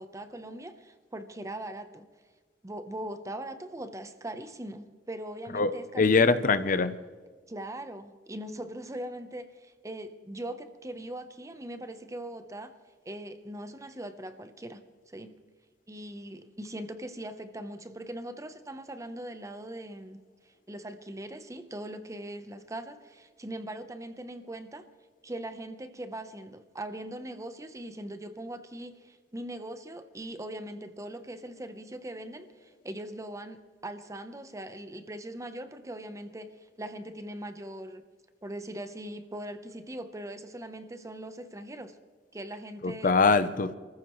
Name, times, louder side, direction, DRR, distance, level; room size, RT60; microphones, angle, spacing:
voice 1, 0.0-2.1 2.6-6.6 7.5-12.7 13.1-14.8 15.1-15.3 15.9-20.2 20.7-24.9 25.2-38.0 38.4-42.0 42.3-43.2, right 1 dB, 20° right, 0.9 m, -40 dB
voice 2, 5.5-6.9 42.8-43.7, left 4 dB, 50° left, 0.7 m, -23 dB
28.5 x 14.5 x 3.2 m
head